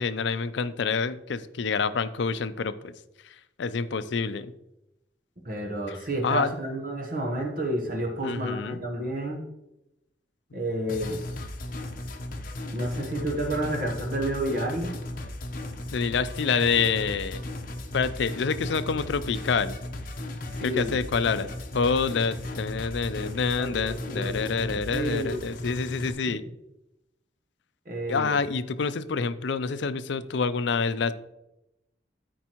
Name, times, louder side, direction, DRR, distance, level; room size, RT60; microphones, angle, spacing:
voice 1, 0.0-2.9 3.6-4.5 5.9-6.0 6.2-6.5 8.2-8.8 15.9-17.4 17.9-19.8 20.6-21.5 21.7-26.4 28.1-31.1, left 5 dB, 75° left, 13 dB, 0.4 m, -27 dB
voice 2, 5.4-9.4 10.5-11.2 12.7-15.0 20.5-21.0 23.6-25.5 26.3-26.4 27.9-28.4, right 1 dB, 50° right, 2 dB, 1.0 m, -30 dB
sound 1, 10.9-26.1, left 1 dB, 50° left, 0.8 m, -36 dB
13.5 x 4.6 x 3.0 m, 0.89 s
head